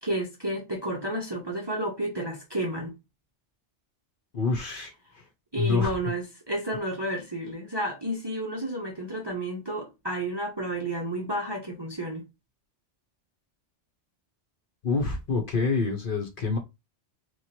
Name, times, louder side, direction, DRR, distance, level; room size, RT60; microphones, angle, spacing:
voice 1, 0.0-2.9 5.5-12.3, right 1 dB, 25° right, 0.7 m, -31 dB
voice 2, 4.3-4.9 5.6-5.9 14.8-16.6, left 4 dB, 50° left, 0.9 m, -26 dB
3.0 x 2.5 x 4.2 m
omnidirectional pair, 1.2 m